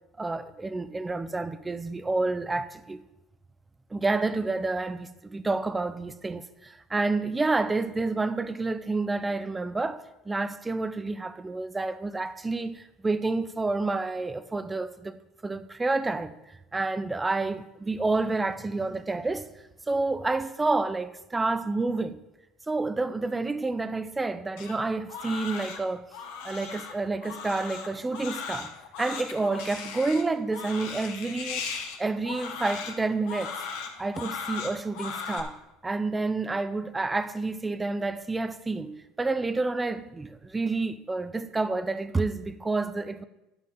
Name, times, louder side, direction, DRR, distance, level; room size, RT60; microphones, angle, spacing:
voice 1, 0.2-3.0 3.9-15.2 15.4-16.4 16.7-19.5 19.9-22.2 22.7-26.0 26.4-28.7 29.0-33.5 34.0-35.6 35.8-43.2, right 3 dB, 15° right, 0.9 m, -29 dB
Crying sobbing, 24.6-35.4, left 6 dB, 70° left, 1.9 m, -37 dB
11.5 x 5.7 x 7.3 m
hypercardioid pair, 80°, 0 cm